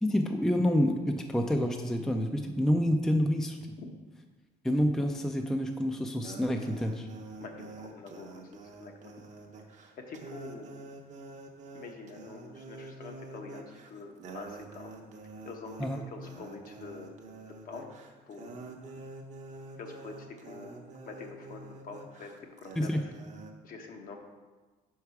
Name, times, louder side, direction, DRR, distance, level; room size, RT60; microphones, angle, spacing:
voice 1, 0.0-3.6 4.6-7.1 15.8-16.0 22.8-23.0, equal, 5° left, 4 dB, 0.4 m, -28 dB
sound 1, 6.2-23.5, right 3 dB, 45° right, 0.8 m, -47 dB
voice 2, 7.4-9.1 10.0-10.8 11.7-14.9 15.4-17.2 17.6-17.9 18.3-18.6 19.8-23.0 23.6-24.2, left 4 dB, 55° left, 3 dB, 0.9 m, -46 dB
4.7 x 4.5 x 5.7 m, 1.3 s
cardioid pair, 110°, 17 cm